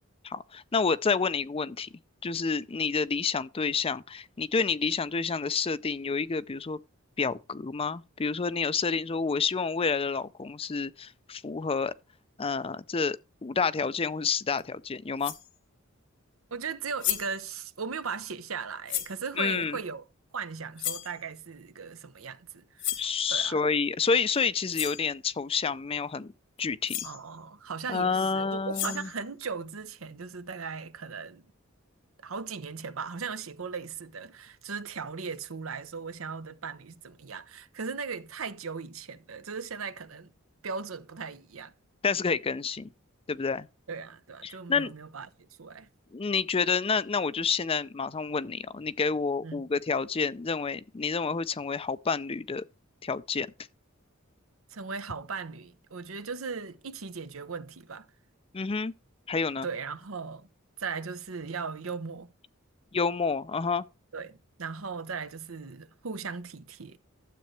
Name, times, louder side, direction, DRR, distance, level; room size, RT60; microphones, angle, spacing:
voice 1, 0.2-1.9 2.2-6.8 7.2-11.9 12.4-15.3 19.4-19.8 23.0-26.3 26.6-27.0 27.9-29.1 42.0-42.9 43.3-43.7 44.4-44.9 46.1-52.6 53.0-53.5 58.5-58.9 59.3-59.7 62.9-63.8, left 5 dB, 30° left, 0.5 m, -29 dB
sound 1, 14.6-14.7 15.2-15.5 16.7-16.8 17.0-17.4 18.9-19.2 20.8-21.1 22.8-23.1 24.3-24.4 24.7-25.1 26.6-26.7 26.9-27.2 28.5-29.2, left 12 dB, 65° left, 1.3 m, -33 dB
voice 2, 16.5-20.0 20.3-22.9 23.3-23.6 27.0-31.4 32.2-40.3 40.6-41.7 43.9-45.9 49.4-49.6 54.7-58.1 59.6-60.5 60.8-62.3 64.1-67.0, right 5 dB, 75° right, 0.9 m, -38 dB
12.5 x 7.7 x 3.2 m
head